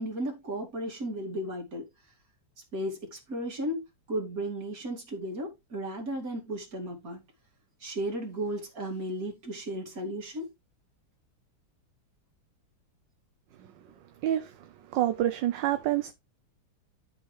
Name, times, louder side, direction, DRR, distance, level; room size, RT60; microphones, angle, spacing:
voice 1, 0.0-1.8 2.7-3.8 4.1-7.2 7.8-10.5, right 1 dB, 45° right, 2.8 m, -34 dB
voice 2, 14.2-14.5 14.9-16.1, right 13 dB, 70° right, 1.3 m, -27 dB
12.0 x 5.1 x 3.3 m
omnidirectional pair, 2.2 m